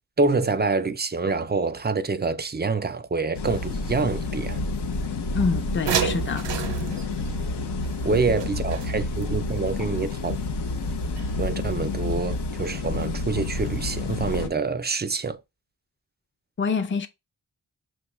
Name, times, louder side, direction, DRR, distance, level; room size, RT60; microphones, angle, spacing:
voice 1, 0.2-4.6 8.0-10.4 11.4-15.4, right 4 dB, 25° right, 0.4 m, -26 dB
sound 1, 3.3-14.5, left 3 dB, 75° left, 0.6 m, -29 dB
voice 2, 5.3-6.8 16.6-17.1, left 5 dB, 30° left, 0.5 m, -27 dB
sound 2, 5.9-9.3 11.2-11.3 11.6-11.7, right 7 dB, 85° right, 0.6 m, -30 dB
6.1 x 2.3 x 3.0 m
wide cardioid pair, 100°, 41 cm